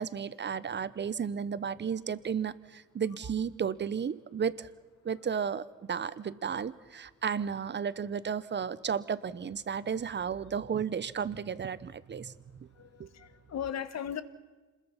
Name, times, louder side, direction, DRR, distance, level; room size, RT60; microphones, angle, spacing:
voice 1, 0.0-4.7 5.0-12.3 12.6-12.7 13.0-13.1, right 7 dB, 35° right, 16 dB, 1.0 m, -33 dB
voice 2, 12.7-14.2, left 9 dB, 60° left, 12 dB, 1.4 m, -38 dB
26.5 x 21.0 x 5.8 m, 1.3 s
cardioid pair, 90°, 30 cm